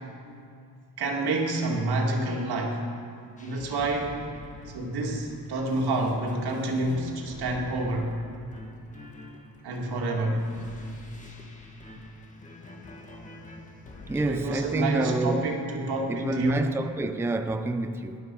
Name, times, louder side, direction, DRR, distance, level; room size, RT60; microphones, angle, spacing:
voice 1, 1.0-2.9 3.4-4.2 4.7-8.2 9.6-10.5 14.2-16.7, right 2 dB, 80° right, 2.4 m, -28 dB
sound 1, 3.4-14.5, left 1 dB, 20° left, 1.8 m, -45 dB
voice 2, 14.1-15.5 16.1-18.2, right 2 dB, 5° right, 0.5 m, -28 dB
19.0 x 12.0 x 5.5 m
cardioid pair, 140°, 38 cm